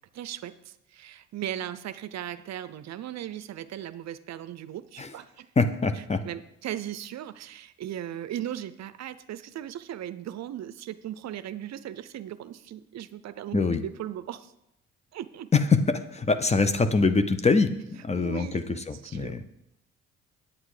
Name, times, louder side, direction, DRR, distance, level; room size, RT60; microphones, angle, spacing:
voice 1, 0.1-5.5 6.2-14.5 15.1-15.5 18.2-19.5, right 11 dB, 60° right, 13 dB, 0.5 m, -38 dB
voice 2, 5.6-6.2 13.5-13.8 15.5-19.4, left 4 dB, 20° left, 11 dB, 0.7 m, -24 dB
8.8 x 8.0 x 4.9 m, 0.84 s
cardioid pair, 90°, 30 cm